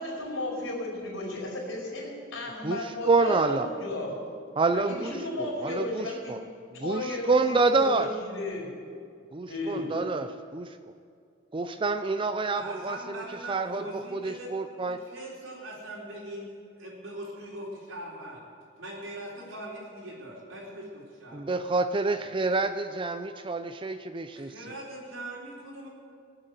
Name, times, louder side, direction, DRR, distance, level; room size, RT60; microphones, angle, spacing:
voice 1, 0.0-4.2 4.7-6.3 6.7-8.6 9.5-9.9, left 2 dB, 80° left, -2 dB, 4.9 m, -34 dB
voice 2, 2.6-3.7 4.6-5.1 5.4-6.4 6.8-8.1 9.3-10.8 11.5-13.2 13.5-15.0 21.3-24.5, right 3 dB, 25° right, 9 dB, 0.5 m, -27 dB
voice 3, 12.5-16.5 16.8-18.4 18.8-21.5 24.4-25.9, right 1 dB, 80° right, -3 dB, 4.1 m, -41 dB
18.5 x 7.9 x 8.1 m, 2.2 s
head